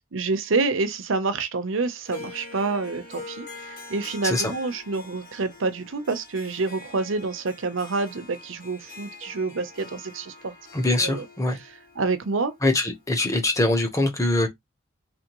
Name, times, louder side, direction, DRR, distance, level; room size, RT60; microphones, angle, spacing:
voice 1, 0.1-10.5 11.0-11.3 12.0-12.5, right 3 dB, 75° right, 0.7 m, -27 dB
Harp, 2.1-13.4, left 3 dB, 40° left, 1.7 m, -44 dB
voice 2, 10.7-11.6 12.6-14.5, left 2 dB, 15° left, 0.9 m, -23 dB
3.5 x 3.3 x 3.0 m
head